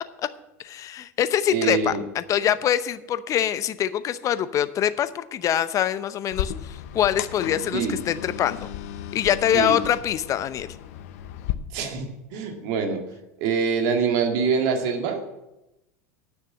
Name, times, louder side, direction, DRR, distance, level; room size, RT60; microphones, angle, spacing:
voice 1, 0.6-8.7 9.1-10.7, left 10 dB, 40° left, 14 dB, 0.7 m, -24 dB
voice 2, 1.5-2.0 7.7-8.0 9.5-9.8 11.7-13.0 13.4-15.2, right 6 dB, 60° right, 4 dB, 2.1 m, -24 dB
sound 1, 6.3-11.5, left 11 dB, 70° left, 0.8 m, -34 dB
9.6 x 6.5 x 8.6 m, 0.93 s
hypercardioid pair, 85°, 8 cm